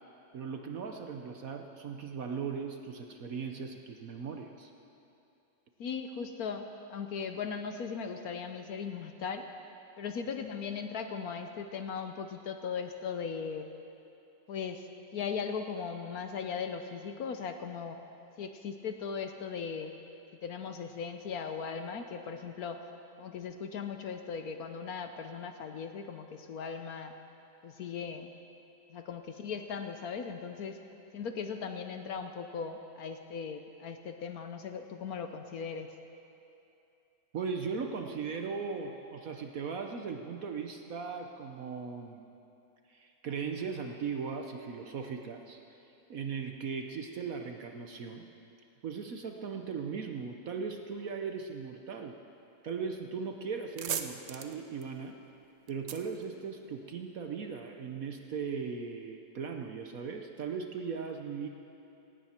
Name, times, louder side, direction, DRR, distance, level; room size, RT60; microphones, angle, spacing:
voice 1, 0.3-4.7 37.3-42.2 42.9-45.6 46.1-48.3 48.8-52.2 52.6-55.2 55.7-61.5, right 5 dB, 55° right, 4 dB, 1.0 m, -38 dB
voice 2, 5.8-9.5 10.0-13.7 14.5-14.9 15.1-18.0 18.4-19.9 20.4-22.8 23.2-27.1 27.6-28.3 28.9-30.8 31.1-35.9, left 6 dB, 60° left, 7 dB, 1.0 m, -38 dB
sound 1, 53.2-53.3 53.5-57.1, right 7 dB, 85° right, 0.5 m, -40 dB
17.5 x 16.5 x 4.4 m, 2.8 s
omnidirectional pair, 2.1 m